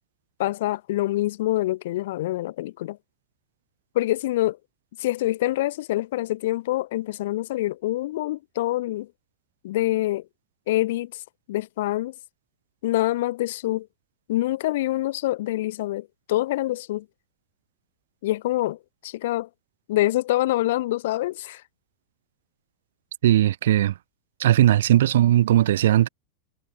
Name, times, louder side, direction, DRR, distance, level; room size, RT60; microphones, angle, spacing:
voice 1, 0.4-3.0 3.9-4.6 5.0-9.1 9.6-10.2 10.7-11.2 11.5-12.1 12.8-13.9 14.3-17.0 18.2-19.5 19.9-21.6, left 16 dB, 55° left, 2.8 m, -25 dB
voice 2, 23.2-23.9 24.4-26.1, right 12 dB, 60° right, 2.9 m, -18 dB
figure-of-eight pair, 90°, 0 cm